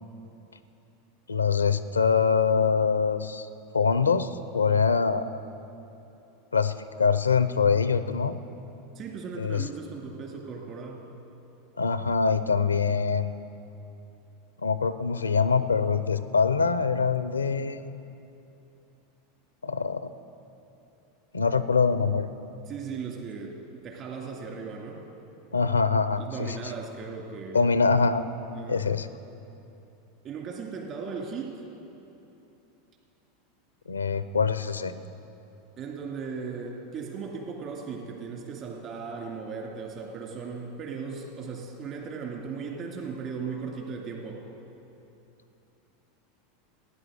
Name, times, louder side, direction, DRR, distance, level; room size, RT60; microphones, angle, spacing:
voice 1, 1.3-3.5 3.7-5.3 6.5-6.7 7.0-8.3 9.4-9.7 11.8-13.4 14.6-18.0 19.6-20.1 21.3-22.3 25.5-26.5 27.5-28.2 28.7-29.1 33.9-34.9, left 5 dB, 90° left, 13 dB, 0.5 m, -24 dB
voice 2, 8.9-11.0 22.7-25.0 26.2-27.6 28.5-28.9 30.2-31.6 35.8-44.5, right 5 dB, 45° right, 0 dB, 2.5 m, -37 dB
15.0 x 9.7 x 6.5 m, 2.9 s
hypercardioid pair, 90°, 0 cm